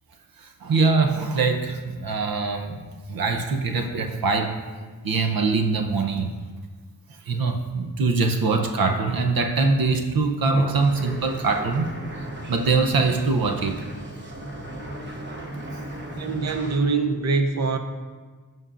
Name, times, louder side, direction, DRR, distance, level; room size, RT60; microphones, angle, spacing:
voice 1, 0.4-2.8 3.1-4.6 5.0-6.3 7.3-11.9 12.5-13.8 15.5-15.7, right 4 dB, 85° right, 5 dB, 0.7 m, -23 dB
sound 1, 10.7-16.8, right 1 dB, 30° right, 1.2 m, -36 dB
voice 2, 16.1-17.8, right 4 dB, 50° right, 6 dB, 0.7 m, -23 dB
14.5 x 5.5 x 2.5 m, 1.4 s
wide cardioid pair, 90°, 35 cm